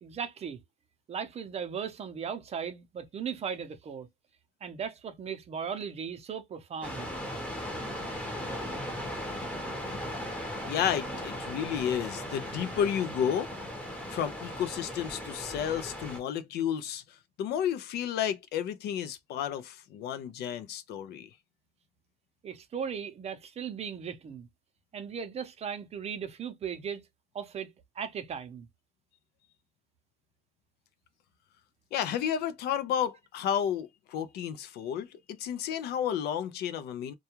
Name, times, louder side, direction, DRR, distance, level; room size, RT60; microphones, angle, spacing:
voice 1, 0.0-0.6 1.1-4.1 4.6-7.1 22.4-24.5 24.9-27.0 27.3-28.7, right 7 dB, 40° right, 0.6 m, -37 dB
sound 1, 6.8-16.2, equal, 5° left, 0.8 m, -37 dB
voice 2, 10.7-13.5 14.1-21.3 31.9-37.1, left 9 dB, 75° left, 0.4 m, -32 dB
2.2 x 2.2 x 2.8 m
cardioid pair, 110°, 17 cm